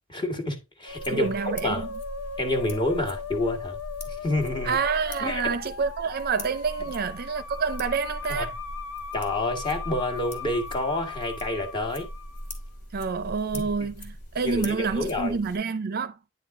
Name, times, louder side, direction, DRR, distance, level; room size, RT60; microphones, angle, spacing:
voice 1, 0.1-1.9 2.4-3.8 4.1-4.8 5.2-5.4 8.3-8.5 9.1-12.1 13.5-13.9 14.4-15.4, left 2 dB, 20° left, 1.4 m, -28 dB
Musical instrument, 0.9-12.6, left 5 dB, 80° left, 0.7 m, -39 dB
sound 1, 0.9-15.6, equal, 55° left, 2.0 m, -41 dB
voice 2, 1.1-1.9 4.6-8.5 12.9-16.2, right 5 dB, 45° right, 0.5 m, -28 dB
9.6 x 3.8 x 3.6 m
head